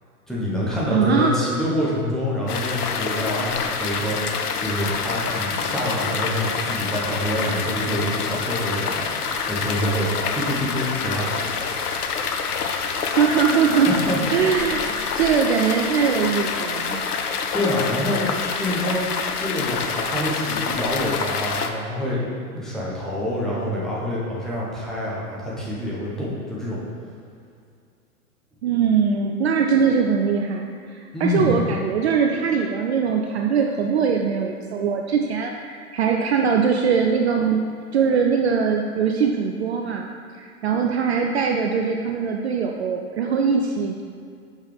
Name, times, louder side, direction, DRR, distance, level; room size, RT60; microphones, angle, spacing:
voice 1, 0.3-9.1 9.5-11.4 13.9-14.2 17.5-18.3 18.5-19.0 19.4-26.8 31.1-31.6, left 1 dB, ahead, -8 dB, 1.0 m, -26 dB
voice 2, 0.9-1.4 13.0-17.0 28.6-37.6 37.9-40.1 40.3-44.0, right 6 dB, 50° right, 2 dB, 0.4 m, -21 dB
sound 1, 2.5-21.7, left 5 dB, 80° left, 0.6 m, -27 dB
6.2 x 5.3 x 3.5 m, 2.2 s
hypercardioid pair, 120°, 45 cm